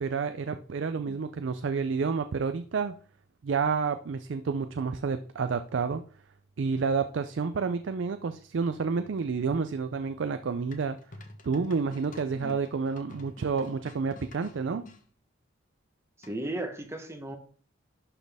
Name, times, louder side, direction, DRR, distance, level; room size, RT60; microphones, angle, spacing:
voice 1, 0.0-2.9 3.4-6.0 6.6-11.0 11.4-14.8, right 5 dB, 65° right, 10 dB, 0.4 m, -29 dB
sound 1, 10.7-15.0 16.2-16.6, left 1 dB, 40° left, 1.0 m, -51 dB
voice 2, 16.2-17.4, right 1 dB, 15° right, 6 dB, 1.0 m, -36 dB
11.5 x 4.1 x 3.4 m, 0.43 s
head